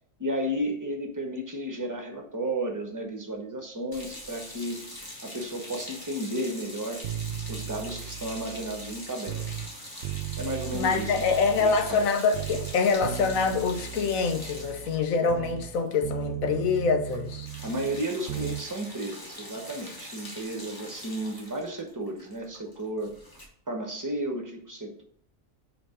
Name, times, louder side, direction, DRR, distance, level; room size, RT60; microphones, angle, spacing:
voice 1, 0.2-4.8 5.2-7.0 7.5-9.6 10.4-11.1 11.6-12.0 17.6-23.1 23.7-25.0, right 1 dB, 15° right, 1.0 m, -33 dB
sound 1, 3.9-16.3 16.6-16.8 17.0-23.5, left 1 dB, 15° left, 1.2 m, -43 dB
sound 2, 7.0-9.7 10.0-12.1 12.3-15.8 16.0-18.6 18.9-19.0, right 12 dB, 85° right, 1.0 m, -37 dB
voice 2, 10.7-17.5, left 5 dB, 80° left, 1.3 m, -25 dB
5.1 x 4.5 x 5.0 m
omnidirectional pair, 1.4 m